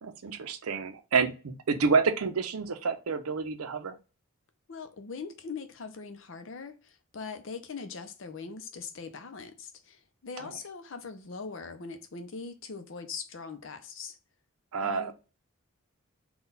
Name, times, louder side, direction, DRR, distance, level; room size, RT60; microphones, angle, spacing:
voice 1, 0.0-3.9 14.7-15.1, right 5 dB, 85° right, 0.5 m, -28 dB
voice 2, 4.7-14.2 14.8-15.1, left 5 dB, 60° left, 0.6 m, -41 dB
3.9 x 2.3 x 3.9 m
head